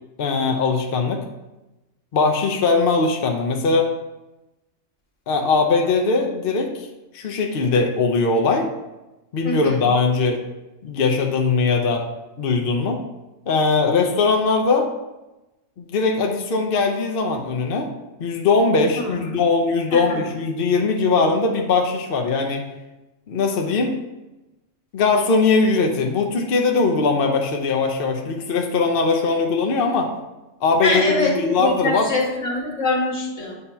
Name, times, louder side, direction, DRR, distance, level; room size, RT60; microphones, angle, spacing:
voice 1, 0.2-1.2 2.1-3.9 5.3-6.9 7.1-8.7 9.3-10.4 10.8-12.0 12.4-13.0 13.5-14.9 15.9-17.9 18.2-22.6 23.3-24.0 24.9-30.1 30.6-32.1, left 4 dB, 55° left, 2 dB, 0.8 m, -20 dB
voice 2, 9.4-9.8 19.0-19.2 19.9-20.3 30.8-33.5, left 2 dB, 75° left, -3 dB, 2.0 m, -24 dB
8.2 x 2.9 x 5.4 m, 1.0 s
omnidirectional pair, 1.3 m